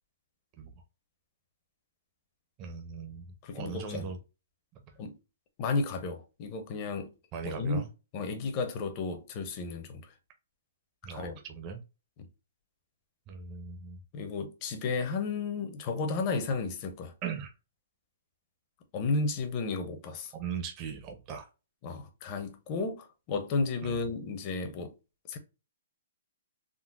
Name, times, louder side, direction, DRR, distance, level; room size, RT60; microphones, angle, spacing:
voice 1, 2.6-3.3 3.5-4.2 7.3-7.9 11.0-11.8 13.3-14.0 17.2-17.5 20.3-21.5 23.8-24.0, right 6 dB, 20° right, 0.5 m, -39 dB
voice 2, 3.4-4.1 5.0-5.2 5.6-7.1 7.4-7.8 8.1-10.1 11.1-11.4 14.1-17.1 18.9-20.3 21.8-24.9 25.3-25.4, left 4 dB, 25° left, 0.6 m, -33 dB
3.7 x 2.0 x 2.2 m
hypercardioid pair, 165°, 0 cm